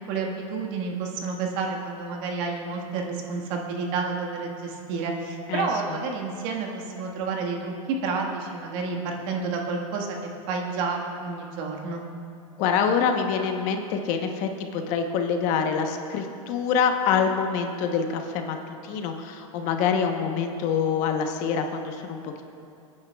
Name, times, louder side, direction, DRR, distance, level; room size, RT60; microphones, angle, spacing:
voice 1, 0.1-12.0, right 4 dB, 55° right, 1 dB, 1.6 m, -30 dB
voice 2, 12.6-18.6 18.8-22.4, left 6 dB, 45° left, 5 dB, 1.0 m, -25 dB
22.5 x 9.6 x 2.3 m, 2.6 s
supercardioid pair, 130°, 18 cm